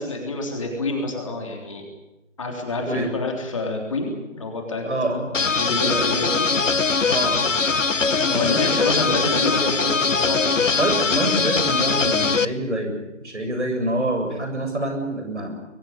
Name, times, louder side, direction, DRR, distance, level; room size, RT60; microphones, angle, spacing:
voice 1, 0.0-1.9 2.4-5.1 5.6-6.5 8.3-10.7, left 2 dB, 25° left, 2 dB, 3.5 m, -27 dB
voice 2, 4.8-5.2 5.6-6.1 7.1-7.5 8.3-9.1 10.7-13.0 13.2-15.6, right 1 dB, 65° right, 5 dB, 7.8 m, -26 dB
sound 1, 5.3-12.5, left 4 dB, 80° left, 1.1 m, -21 dB
23.0 x 18.5 x 9.2 m, 0.98 s
figure-of-eight pair, 165°, 37 cm